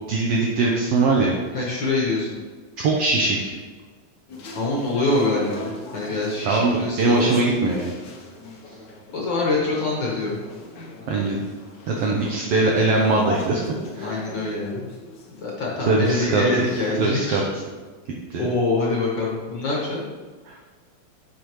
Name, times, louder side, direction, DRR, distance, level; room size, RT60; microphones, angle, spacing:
voice 1, 0.1-1.4 2.8-3.5 6.4-7.9 11.1-11.4 11.9-13.6 13.9-14.2 15.9-16.4 17.0-17.4 18.3-18.5 20.5-20.6, right 3 dB, 70° right, -1 dB, 1.6 m, -21 dB
voice 2, 1.5-2.4 4.5-7.4 9.1-10.4 12.1-12.3 14.0-14.9 15.4-17.4 18.4-20.0, left 2 dB, 50° left, -4 dB, 1.6 m, -25 dB
sound 1, 4.3-17.0, left 2 dB, 75° left, 0.9 m, -37 dB
10.0 x 5.4 x 3.1 m, 1.4 s
omnidirectional pair, 3.3 m